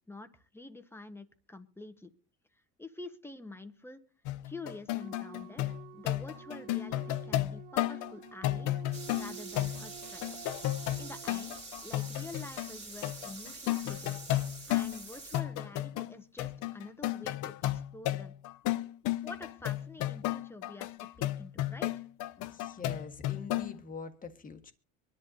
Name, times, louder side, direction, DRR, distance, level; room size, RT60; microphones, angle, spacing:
voice 1, 0.1-2.1 2.5-4.0 4.4-8.8 9.1-10.2 11.0-14.2 14.7-18.3 19.2-20.9 21.2-22.1, left 2 dB, 5° left, 9 dB, 1.1 m, -47 dB
sound 1, 4.3-12.7 13.0-15.0 15.3-16.1 16.4-23.8, left 15 dB, 60° left, 0.7 m, -33 dB
sound 2, 5.0-11.6, right 18 dB, 70° right, 0.7 m, -50 dB
sound 3, 8.9-15.4, right 3 dB, 20° right, 2.5 m, -46 dB
voice 2, 22.4-24.7, left 5 dB, 25° left, 6 dB, 1.5 m, -44 dB
24.5 x 11.0 x 2.7 m, 0.38 s
cardioid pair, 125°, 35 cm